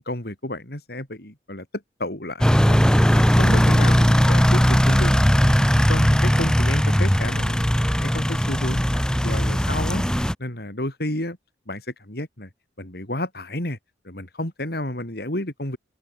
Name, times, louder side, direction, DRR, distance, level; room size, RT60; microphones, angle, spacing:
voice 1, 0.0-1.7 2.0-5.1 5.4-5.5 5.9-7.7 8.0-10.0 10.4-11.4 11.7-12.5 12.8-13.8 14.0-15.8, left 1 dB, 55° left, 4.4 m, -31 dB
sound 1, 2.4-10.3, equal, 5° left, 1.3 m, -18 dB
head